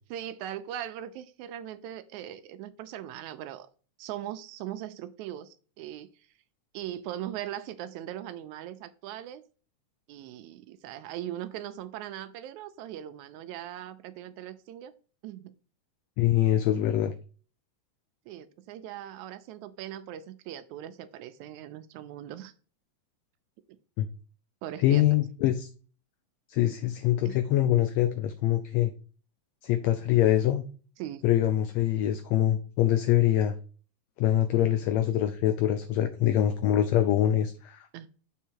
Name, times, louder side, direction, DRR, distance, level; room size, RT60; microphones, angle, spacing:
voice 1, 0.1-3.7 4.0-6.1 6.7-9.4 10.1-14.9 15.2-15.5 18.3-22.5 24.6-25.0 27.3-27.4 31.0-31.2 37.9-38.1, right 12 dB, 80° right, 12 dB, 1.9 m, -40 dB
voice 2, 16.2-17.1 24.0-24.1 24.8-25.7 26.5-28.9 29.6-30.6 31.2-33.5 34.2-37.9, left 12 dB, 80° left, 9 dB, 1.6 m, -24 dB
7.2 x 3.6 x 4.5 m, 0.39 s
omnidirectional pair, 3.4 m